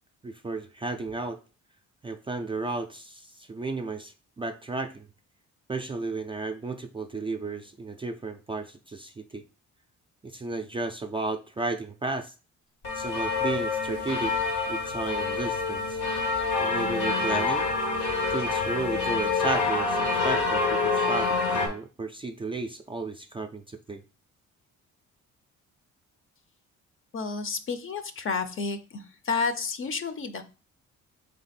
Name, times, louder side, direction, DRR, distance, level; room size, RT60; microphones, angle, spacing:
voice 1, 0.2-1.4 2.0-5.1 5.7-9.4 10.2-12.3 12.9-14.4 14.7-16.0 16.6-17.7 18.3-24.0, right 3 dB, 20° right, 5 dB, 0.3 m, -33 dB
sound 1, 12.8-21.7, left 4 dB, 85° left, 1.4 m, -27 dB
voice 2, 27.1-30.4, left 4 dB, 45° left, 10 dB, 0.6 m, -31 dB
3.5 x 3.3 x 4.2 m, 0.35 s
cardioid pair, 90°, 30 cm